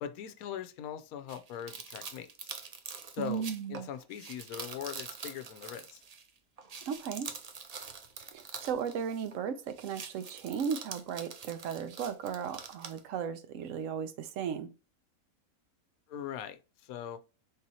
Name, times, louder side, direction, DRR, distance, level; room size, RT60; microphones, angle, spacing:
voice 1, 0.0-2.5 3.1-6.0 16.1-17.2, left 9 dB, 90° left, 1.1 m, -41 dB
sound 1, 1.3-6.3 6.6-9.4 9.7-13.0, right 5 dB, 90° right, 0.3 m, -45 dB
voice 2, 3.2-3.9 6.8-7.3 8.3-14.7, right 7 dB, 70° right, 0.9 m, -36 dB
4.2 x 3.8 x 2.7 m
omnidirectional pair, 1.5 m